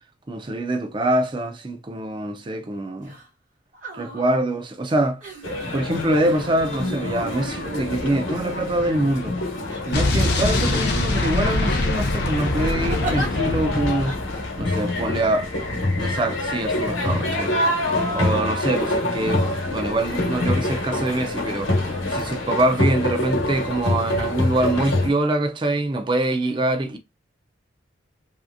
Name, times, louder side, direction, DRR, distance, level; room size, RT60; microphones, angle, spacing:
voice 1, 0.3-3.1 3.9-5.2 5.7-9.4 9.9-14.2 14.6-15.5 16.0-17.5 18.1-19.5 19.7-21.7 22.1-27.0, right 1 dB, 25° right, 0.4 m, -24 dB
sound 1, 3.0-3.3 3.7-4.4 5.2-5.7 6.7-8.8 9.6-10.3 10.7-10.9 11.4-12.0 12.9-13.3 14.1-14.2, right 2 dB, 40° right, 1.0 m, -35 dB
sound 2, 5.4-25.1, left 1 dB, 75° left, 1.0 m, -26 dB
Explosion, 9.9-14.7, left 2 dB, 55° left, 0.6 m, -24 dB
3.1 x 2.8 x 2.5 m
head